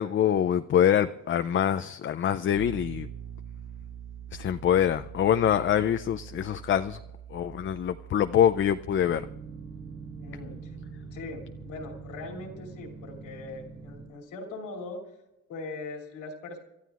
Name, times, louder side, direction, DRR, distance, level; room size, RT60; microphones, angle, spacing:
voice 1, 0.0-3.1 4.3-7.0 7.3-9.2, left 9 dB, 40° left, 10 dB, 0.5 m, -25 dB
Bass guitar, 2.5-12.4, right 9 dB, 50° right, 3.1 m, -45 dB
sound 1, 9.0-14.1, right 4 dB, 75° right, 5.6 m, -44 dB
voice 2, 10.2-10.8 11.1-15.0 15.5-16.6, left 3 dB, 85° left, 2 dB, 2.9 m, -40 dB
29.0 x 13.0 x 2.5 m, 0.92 s
cardioid pair, 90°, 30 cm